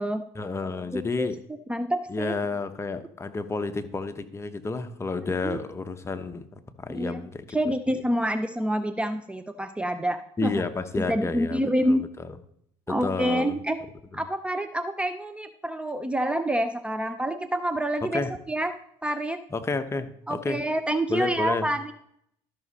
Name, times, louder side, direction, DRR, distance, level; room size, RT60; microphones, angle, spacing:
voice 1, 0.4-1.4 2.1-6.4 6.8-7.5 10.4-11.6 11.9-12.0 12.9-13.5 18.1-18.3 19.5-20.6 21.1-21.7, left 3 dB, 20° left, 9 dB, 0.9 m, -30 dB
voice 2, 1.7-2.4 5.2-5.6 6.9-7.2 7.5-10.6 11.1-12.0 12.9-13.8 14.1-18.7 19.0-19.4 20.3-21.9, right 1 dB, 10° right, 10 dB, 0.6 m, -27 dB
13.0 x 6.1 x 4.1 m, 0.70 s
supercardioid pair, 85°, 12 cm